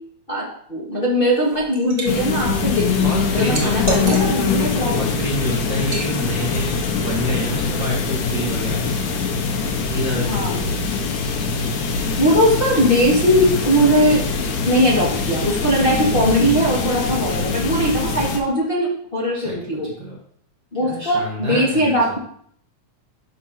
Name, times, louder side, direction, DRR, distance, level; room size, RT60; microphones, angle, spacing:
voice 1, 0.3-3.1 3.3-5.0 10.1-10.6 12.2-14.2 14.6-19.9 20.7-22.2, equal, 20° left, -6 dB, 1.8 m, -19 dB
Liquid, 1.3-2.1 2.5-4.6 5.0-5.2 5.8-6.1, right 1 dB, 30° right, 1.0 m, -28 dB
sound 1, 2.1-18.4, left 5 dB, 85° left, 2.7 m, -23 dB
voice 2, 3.0-4.1 4.9-11.0 15.9-16.3 19.3-20.2 20.8-22.2, right 1 dB, 45° right, -3 dB, 1.8 m, -28 dB
11.0 x 6.7 x 2.9 m, 0.63 s
omnidirectional pair, 3.4 m